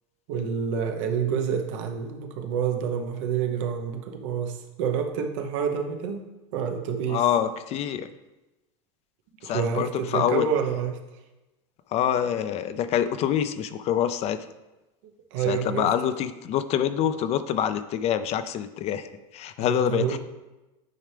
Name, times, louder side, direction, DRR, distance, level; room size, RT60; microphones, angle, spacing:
voice 1, 0.3-6.2 6.5-7.2 9.4-10.9 15.3-15.9 19.6-20.2, right 7 dB, 80° right, 5 dB, 1.0 m, -28 dB
voice 2, 7.1-8.1 9.4-10.5 11.9-14.5 15.5-20.2, left 9 dB, 45° left, 12 dB, 0.5 m, -26 dB
9.3 x 4.5 x 3.4 m, 1.1 s
supercardioid pair, 125°, 16 cm